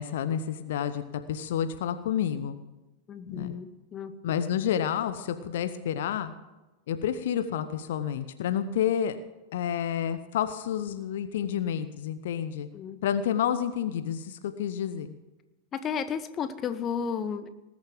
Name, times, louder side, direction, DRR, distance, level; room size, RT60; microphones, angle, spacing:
voice 1, 0.0-2.6 3.3-3.5 4.2-6.3 6.9-9.2 9.5-12.7 13.0-15.1, left 9 dB, 55° left, 11 dB, 0.8 m, -29 dB
voice 2, 3.1-4.3 12.7-13.0 15.7-17.5, left 7 dB, 30° left, 11 dB, 1.0 m, -33 dB
19.5 x 7.3 x 7.6 m, 1.1 s
figure-of-eight pair, 90°, 0 cm